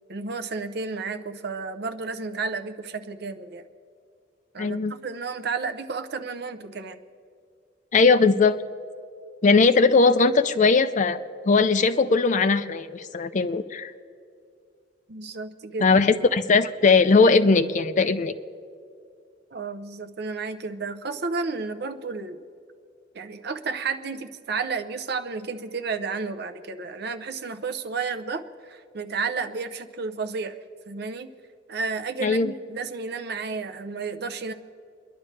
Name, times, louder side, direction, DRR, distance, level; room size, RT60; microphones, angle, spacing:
voice 1, 0.1-3.7 4.5-4.8 5.0-7.0 15.1-15.9 19.5-22.4 23.1-30.6 30.9-31.3 31.7-34.5, right 4 dB, 60° right, 8 dB, 0.7 m, -32 dB
voice 2, 4.6-4.9 7.9-8.6 9.4-13.9 15.8-18.3 32.2-32.5, left 4 dB, 45° left, 12 dB, 0.5 m, -19 dB
29.5 x 11.0 x 3.3 m, 2.3 s
head